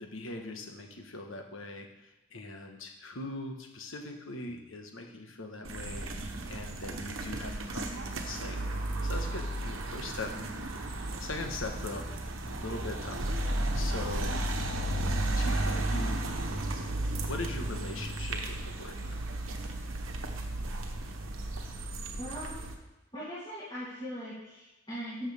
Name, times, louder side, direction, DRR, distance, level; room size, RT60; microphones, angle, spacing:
voice 1, 0.0-10.3 11.2-12.3 12.6-13.3 13.7-14.4 14.8-16.3 17.3-19.2, left 2 dB, 85° left, 3 dB, 1.3 m, -41 dB
sound 1, 5.6-22.7, right 1 dB, 85° right, 1.1 m, -34 dB
voice 2, 22.2-22.7 23.1-25.3, equal, 25° left, -11 dB, 2.9 m, -40 dB
13.0 x 6.4 x 3.5 m, 1.0 s
head